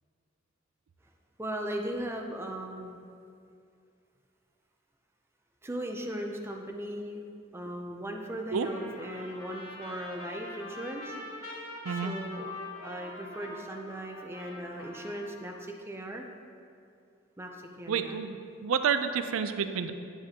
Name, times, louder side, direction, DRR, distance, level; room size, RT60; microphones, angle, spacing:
voice 1, 1.4-3.0 5.6-11.2 11.9-12.5 12.8-16.3 17.4-18.2, right 1 dB, 10° right, 2 dB, 0.5 m, -38 dB
Trumpet, 8.6-15.6, left 1 dB, 90° left, 1.3 m, -44 dB
voice 2, 17.9-18.4 18.6-19.9, right 6 dB, 85° right, 9 dB, 0.4 m, -29 dB
9.5 x 7.2 x 2.9 m, 2.4 s
head